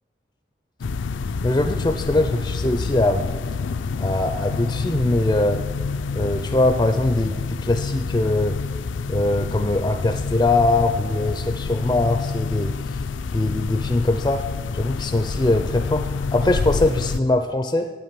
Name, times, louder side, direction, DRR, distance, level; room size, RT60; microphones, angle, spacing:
sound 1, 0.8-17.2, left 4 dB, 80° left, 0.4 m, -28 dB
voice 1, 1.4-3.3 4.0-5.6 6.1-8.6 9.1-12.7 13.3-14.4 14.7-17.9, left 2 dB, 20° left, 7 dB, 0.4 m, -22 dB
9.0 x 8.9 x 7.5 m, 1.5 s
head